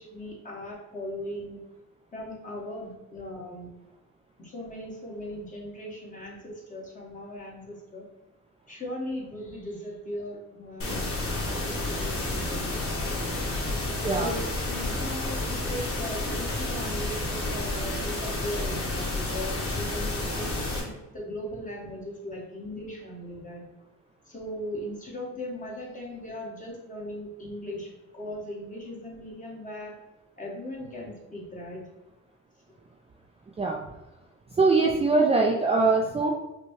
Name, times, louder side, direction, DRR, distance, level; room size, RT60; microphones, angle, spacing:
voice 1, 0.0-1.6 2.1-3.7 4.4-8.0 8.7-13.2 14.1-23.6 24.2-30.0 30.4-31.8, left 1 dB, 25° left, -3 dB, 1.4 m, -38 dB
sound 1, 10.8-20.8, left 2 dB, 45° left, 1.3 m, -30 dB
voice 2, 34.5-36.3, right 3 dB, 20° right, 0 dB, 0.4 m, -22 dB
5.6 x 2.2 x 3.1 m, 1.0 s
cardioid pair, 90°, 30 cm